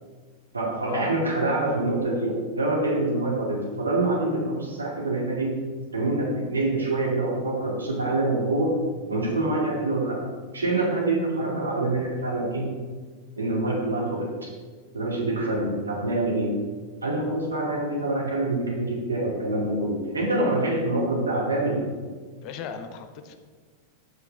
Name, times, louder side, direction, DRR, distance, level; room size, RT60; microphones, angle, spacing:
voice 1, 0.5-5.5 5.9-8.7 9.1-10.2 10.5-12.7 13.4-14.3 14.9-16.5 17.0-21.8, right 2 dB, 75° right, -5 dB, 2.3 m, -25 dB
voice 2, 22.4-23.4, left 7 dB, 40° left, 8 dB, 0.7 m, -36 dB
8.2 x 6.2 x 3.5 m, 1.5 s
figure-of-eight pair, 90°, 0 cm